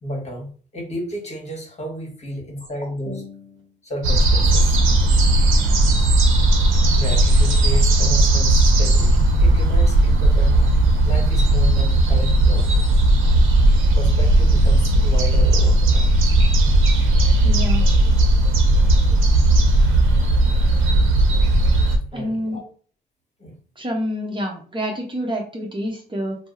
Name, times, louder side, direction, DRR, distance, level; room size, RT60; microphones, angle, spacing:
voice 1, 0.0-4.8 6.6-10.6 11.0-13.0 14.0-16.1 22.1-22.7 23.4-23.6, equal, 35° left, 0 dB, 1.3 m, -33 dB
sound 1, 4.0-22.0, right 1 dB, 85° right, 0.7 m, -16 dB
voice 2, 17.4-17.9 22.1-22.6 23.8-26.4, equal, 25° right, 0 dB, 0.8 m, -27 dB
2.6 x 2.0 x 3.7 m, 0.43 s
cardioid pair, 90°, 20 cm